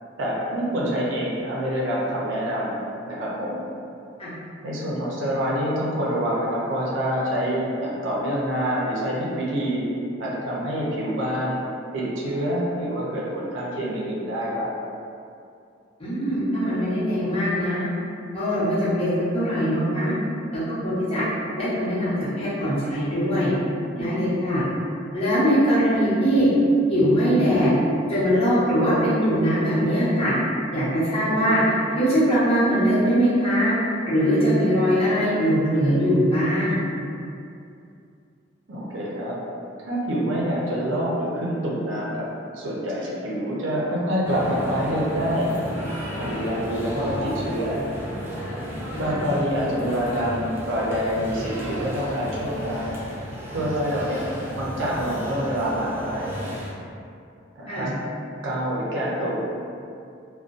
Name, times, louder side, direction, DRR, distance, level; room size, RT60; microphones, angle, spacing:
voice 1, 0.2-3.6 4.6-9.8 10.2-11.6 11.9-14.7 23.9-24.2 38.7-39.4 39.8-42.3 42.5-45.5 46.1-47.8 49.0-53.0 53.5-54.2 54.6-56.4 57.6-57.9 58.4-59.4, equal, 70° right, -5 dB, 0.6 m, -26 dB
voice 2, 16.0-17.8 18.3-20.1 20.5-21.2 21.6-23.5 24.0-24.6 25.1-26.5 26.9-27.7 28.1-30.3 30.7-33.7 34.1-36.8 48.9-49.2 57.7-57.9, equal, 30° left, -13 dB, 1.0 m, -21 dB
sound 1, 44.2-56.7, equal, 10° right, 0.4 m, -33 dB
2.5 x 2.2 x 2.4 m, 2.5 s
head